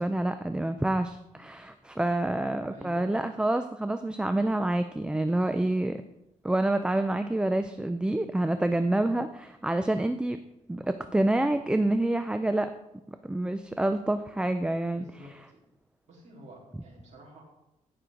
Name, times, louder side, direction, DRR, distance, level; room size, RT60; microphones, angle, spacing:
voice 1, 0.0-6.0 6.4-10.4 10.7-12.7 13.2-15.1, right 1 dB, 5° right, 9 dB, 0.4 m, -27 dB
voice 2, 2.7-3.1 14.9-15.6 16.1-17.4, right 1 dB, 60° right, -3 dB, 4.0 m, -49 dB
16.0 x 6.1 x 3.8 m, 0.87 s
cardioid pair, 125°, 13 cm